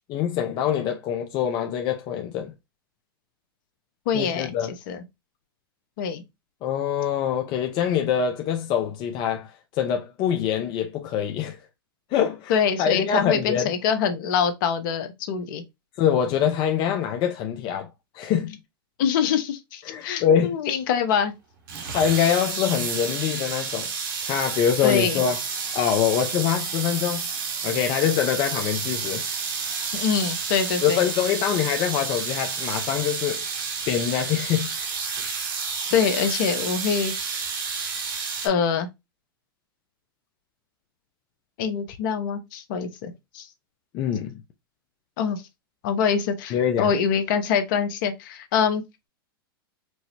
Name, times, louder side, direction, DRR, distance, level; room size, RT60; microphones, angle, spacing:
voice 1, 0.1-2.5 4.1-4.7 6.6-11.6 12.1-13.7 16.0-17.9 18.1-18.6 19.9-20.6 21.9-23.9 24.2-25.4 25.7-27.3 27.6-29.2 30.8-33.4 33.9-34.8 35.9-36.1 43.9-44.4 46.5-46.9, left 9 dB, 40° left, 0.5 m, -24 dB
voice 2, 4.1-4.5 4.9-5.0 6.0-6.2 12.5-15.6 19.0-21.3 24.8-25.2 29.9-31.0 35.9-37.1 38.4-38.9 41.6-43.5 45.2-45.4 45.8-48.8, left 7 dB, 60° left, 0.8 m, -24 dB
sound 1, 21.7-38.5, right 5 dB, 60° right, 1.1 m, -30 dB
4.6 x 2.0 x 2.7 m
hypercardioid pair, 115°, 12 cm